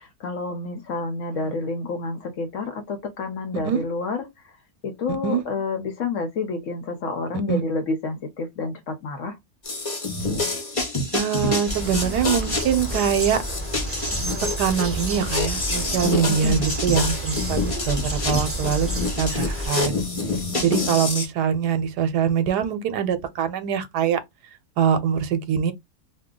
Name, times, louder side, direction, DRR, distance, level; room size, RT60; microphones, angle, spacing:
voice 1, 0.0-4.5 4.8-9.4 16.3-16.7 20.5-21.0, left 3 dB, 60° left, 0.9 m, -29 dB
sound 1, 9.7-21.3, left 3 dB, 35° left, 0.5 m, -27 dB
voice 2, 11.1-13.4 14.6-17.6 17.9-18.9 19.2-19.9 20.6-24.2 24.8-25.7, right 8 dB, 85° right, 1.2 m, -23 dB
sound 2, 11.7-19.7, right 1 dB, 15° right, 0.4 m, -30 dB
2.7 x 2.2 x 3.6 m
omnidirectional pair, 1.7 m